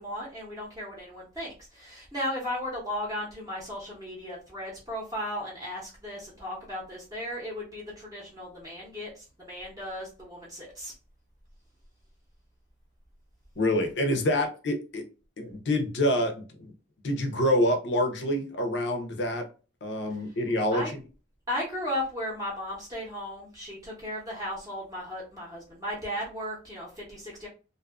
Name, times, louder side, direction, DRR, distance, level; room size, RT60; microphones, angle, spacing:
voice 1, 0.0-10.9 20.7-20.9 21.5-27.5, left 1 dB, 20° right, 0.7 m, -35 dB
voice 2, 13.6-15.0 15.4-16.7 17.0-19.5 19.8-21.0, left 1 dB, 70° left, 0.6 m, -27 dB
2.6 x 2.3 x 2.4 m
head